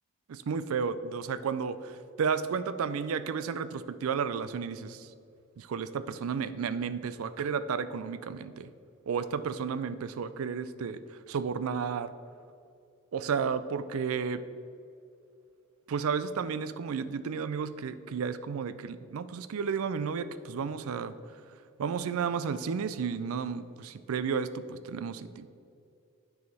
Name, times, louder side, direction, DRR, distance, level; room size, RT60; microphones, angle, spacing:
voice 1, 0.3-5.1 5.6-8.7 9.1-12.1 13.1-14.4 15.9-21.1 21.8-25.5, right 6 dB, 75° right, 13 dB, 0.4 m, -32 dB
9.4 x 4.9 x 4.1 m, 2.6 s
head